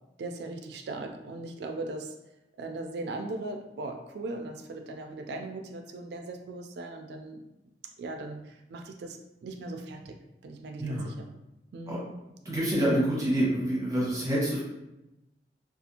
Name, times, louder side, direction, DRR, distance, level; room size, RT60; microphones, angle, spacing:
voice 1, 0.2-2.1 2.6-7.4 8.0-11.3 11.7-12.1, right 2 dB, 65° right, 4 dB, 0.3 m, -39 dB
voice 2, 12.4-14.6, right 1 dB, 20° right, -6 dB, 0.8 m, -27 dB
2.5 x 2.3 x 2.8 m, 0.92 s
head